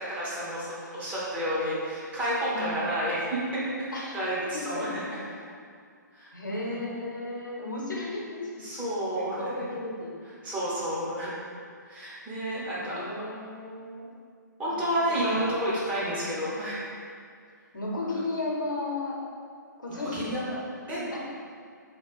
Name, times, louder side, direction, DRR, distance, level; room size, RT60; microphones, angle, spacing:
voice 1, 0.1-3.4 3.7-5.0 5.3-5.4 6.1-6.7 8.6-9.6 10.4-11.4 11.8-13.2 14.6-16.8 20.1-20.5 20.9-21.2, equal, 15° right, -8 dB, 0.7 m, -30 dB
voice 2, 6.3-8.7 9.2-10.1 12.8-14.1 15.1-15.5 15.9-16.2 17.7-19.2 19.8-20.6 21.1-21.2, left 2 dB, 80° left, -3 dB, 0.8 m, -34 dB
2.9 x 2.3 x 4.2 m, 2.2 s
figure-of-eight pair, 130°, 10 cm